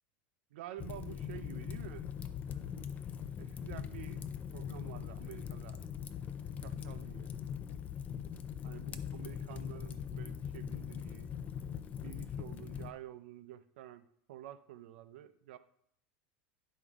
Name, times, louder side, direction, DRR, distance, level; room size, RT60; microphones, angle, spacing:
voice 1, 0.5-2.1 2.5-4.2 4.5-5.9 6.6-7.3 8.6-11.3 12.0-15.6, right 12 dB, 80° right, 11 dB, 0.6 m, -50 dB
Fire, 0.8-12.9, left 8 dB, 25° left, 0.5 m, -41 dB
10.0 x 5.3 x 3.6 m, 0.70 s
supercardioid pair, 155°, 6 cm